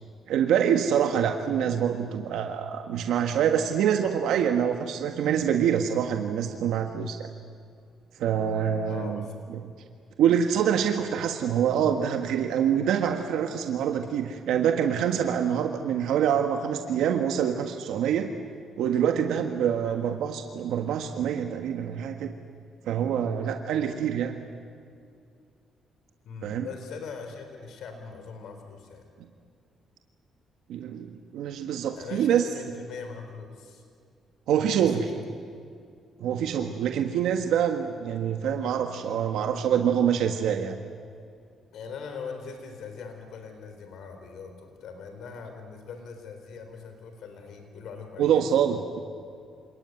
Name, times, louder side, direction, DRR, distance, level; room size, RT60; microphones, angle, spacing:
voice 1, 0.3-7.3 8.2-9.2 9.5-9.6 10.2-18.3 18.8-22.3 22.8-24.4 26.4-26.7 30.7-32.5 34.5-35.1 36.2-40.8 48.2-49.0, right 8 dB, 85° right, 5 dB, 1.5 m, -25 dB
voice 2, 8.9-9.3 19.8-20.0 23.8-24.0 26.2-29.1 32.0-33.8 34.8-35.2 41.7-48.4, left 5 dB, 75° left, 5 dB, 4.1 m, -41 dB
28.0 x 19.0 x 9.6 m, 2.3 s
cardioid pair, 90°, 0 cm